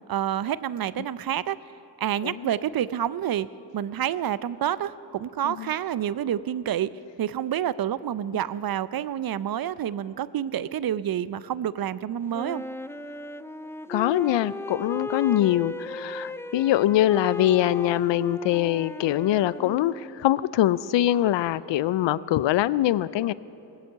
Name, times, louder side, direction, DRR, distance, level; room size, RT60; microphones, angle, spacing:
voice 1, 0.1-1.6 2.0-3.5 3.7-6.9 7.2-12.6, right 10 dB, 50° right, 18 dB, 0.6 m, -28 dB
Wind instrument woodwind instrument, 12.3-20.3, left 1 dB, 5° left, 0.5 m, -36 dB
voice 2, 13.9-23.3, left 13 dB, 65° left, 18 dB, 0.5 m, -23 dB
19.5 x 7.9 x 8.0 m, 2.9 s
supercardioid pair, 45°, 47 cm